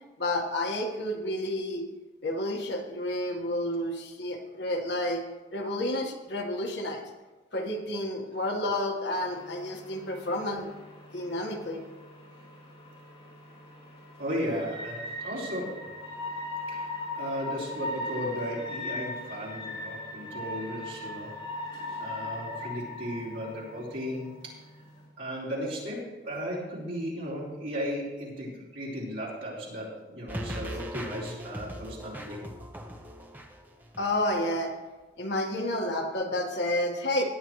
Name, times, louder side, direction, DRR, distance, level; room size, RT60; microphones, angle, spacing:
voice 1, 0.2-1.9 2.2-5.2 5.5-7.0 7.5-10.7 11.1-11.8 34.0-34.7 35.2-37.2, left 1 dB, 65° left, 2 dB, 1.6 m, -30 dB
sound 1, 9.1-25.0, left 2 dB, 30° left, 4.1 m, -39 dB
voice 2, 14.2-15.9 16.7-21.3 22.0-24.5 25.2-32.4, equal, 75° right, -6 dB, 4.5 m, -35 dB
sound 2, 30.3-34.3 34.6-34.7, equal, 10° right, 0.8 m, -39 dB
17.5 x 10.0 x 3.2 m, 1.2 s
head